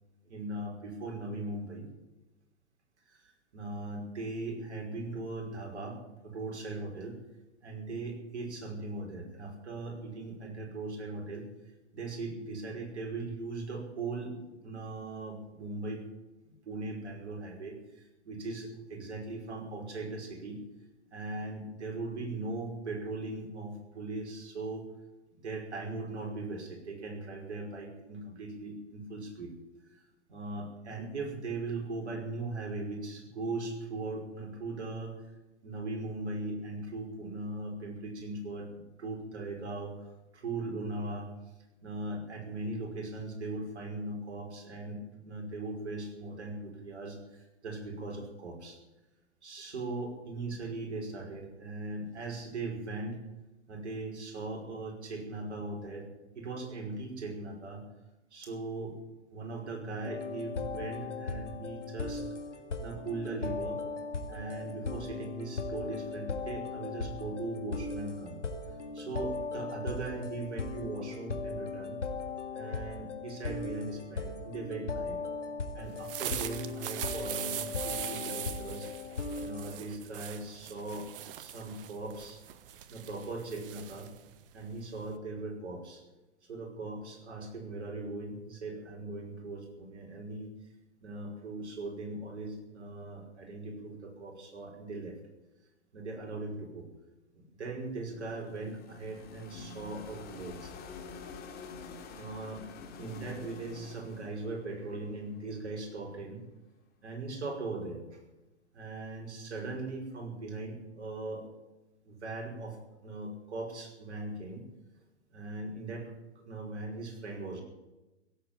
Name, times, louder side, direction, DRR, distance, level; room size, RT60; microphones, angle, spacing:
voice 1, 0.3-1.9 3.5-7.2 7.6-11.4 11.9-14.3 14.6-16.0 16.7-20.6 21.1-24.9 25.4-29.5 29.9-30.0 30.3-35.1 35.6-38.7 39.0-40.0 40.3-41.3 41.8-45.0 45.2-48.8 49.4-53.2 53.7-56.0 56.4-57.8 58.3-59.0 59.3-62.2 62.8-63.8 64.3-68.4 68.9-72.0 72.5-75.2 75.7-78.9 79.4-81.1 81.4-82.4 82.9-84.1 84.5-86.0 86.5-90.5 91.0-95.2 95.9-96.9 97.3-100.7 102.1-102.7 103.0-106.4 107.0-108.0 108.7-111.5 112.0-112.8 113.0-114.6 115.3-116.1 116.4-117.6, right 2 dB, 70° right, 1 dB, 5.4 m, -39 dB
sound 1, 60.0-79.8, left 4 dB, 80° left, 2.1 m, -38 dB
sound 2, 75.9-85.2, right 11 dB, 50° right, 1.2 m, -41 dB
sound 3, 97.8-105.9, left 5 dB, 25° left, 2.7 m, -48 dB
16.5 x 8.2 x 8.9 m, 1.0 s
figure-of-eight pair, 115°, 36 cm